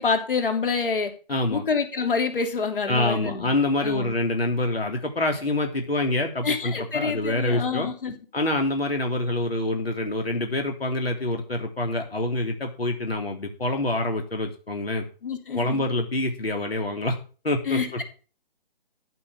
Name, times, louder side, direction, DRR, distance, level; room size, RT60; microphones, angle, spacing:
voice 1, 0.0-1.1 1.5-3.5 3.8-4.1 6.4-8.2 15.2-15.8 17.7-18.0, left 5 dB, 65° left, 6 dB, 3.6 m, -27 dB
voice 2, 1.3-1.6 2.9-7.9 8.3-15.1 15.5-17.2 17.4-18.0, left 2 dB, 85° left, 3 dB, 3.1 m, -26 dB
14.0 x 6.1 x 7.4 m, 0.37 s
figure-of-eight pair, 150°, 29 cm